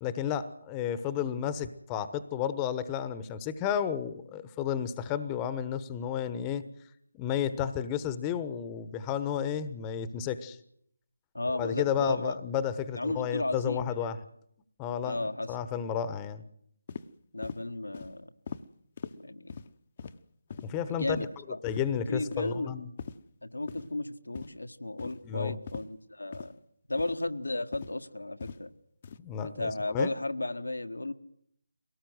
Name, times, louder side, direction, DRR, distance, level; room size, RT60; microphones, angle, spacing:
voice 1, 0.0-6.6 7.2-10.6 11.6-14.2 14.8-15.2 15.5-16.4 20.6-21.3 21.6-22.9 25.2-25.5 29.2-30.1, left 8 dB, 15° left, 13 dB, 1.1 m, -32 dB
voice 2, 11.3-12.6 12.9-14.1 15.0-15.5 17.3-18.3 19.2-19.6 20.8-21.6 22.1-22.7 23.4-26.6 26.9-28.7 29.4-31.1, left 2 dB, 85° left, 8 dB, 1.5 m, -34 dB
sound 1, 16.9-17.1 17.4-17.6 17.9-18.1 18.5-18.6 19.0-19.1 19.5-19.7 20.0-20.2 20.5-20.7 21.1-21.2 21.7-21.8 22.3-22.5 23.0-23.2 23.7-23.9 24.3-24.6 25.0-25.2 25.7-25.8 26.3-26.5 27.0-27.2 27.7-27.9 28.4-28.6 29.0-29.2, left 6 dB, 40° left, 0.9 m, -41 dB
22.5 x 18.0 x 8.0 m, 0.70 s
figure-of-eight pair, 155°, 0 cm